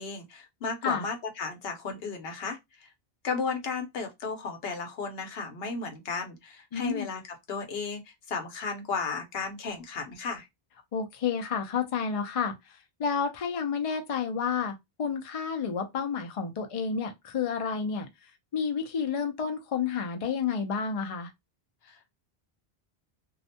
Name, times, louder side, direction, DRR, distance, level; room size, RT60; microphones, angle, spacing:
voice 1, 0.0-2.9 3.2-7.2 7.5-8.0 8.3-10.5 21.8-22.1, left 4 dB, 75° left, 0.9 m, -34 dB
voice 2, 6.7-7.1 10.9-12.5 13.0-18.1 18.5-21.3, left 6 dB, 50° left, 0.4 m, -30 dB
2.4 x 2.1 x 2.6 m
omnidirectional pair, 1.0 m